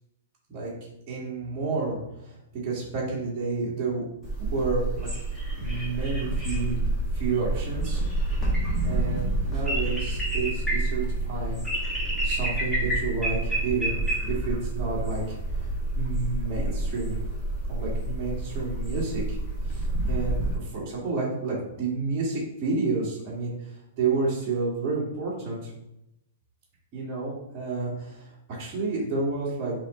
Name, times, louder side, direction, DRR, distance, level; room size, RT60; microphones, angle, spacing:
voice 1, 1.1-4.0 4.4-5.1 5.6-6.8 7.1-8.0 8.4-8.5 8.8-11.6 12.2-15.3 15.9-17.2 17.7-19.4 19.7-23.5 24.0-25.7 26.9-29.7, right 3 dB, 35° right, -6 dB, 1.6 m, -30 dB
sound 1, 4.2-20.6, right 2 dB, ahead, 1.5 m, -28 dB
4.1 x 2.9 x 3.8 m, 0.86 s
hypercardioid pair, 140°, 0 cm